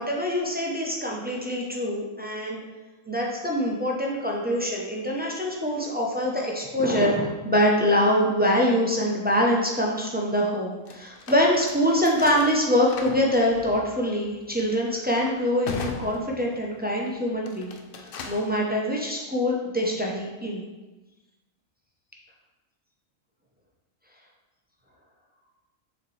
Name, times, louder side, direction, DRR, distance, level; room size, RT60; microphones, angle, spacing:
voice 1, 0.0-2.6 3.1-20.6, equal, 10° right, -2 dB, 0.5 m, -24 dB
sound 1, 10.9-16.9 17.4-18.6, left 4 dB, 60° left, 0.6 m, -39 dB
6.6 x 4.3 x 3.3 m, 1.1 s
omnidirectional pair, 1.4 m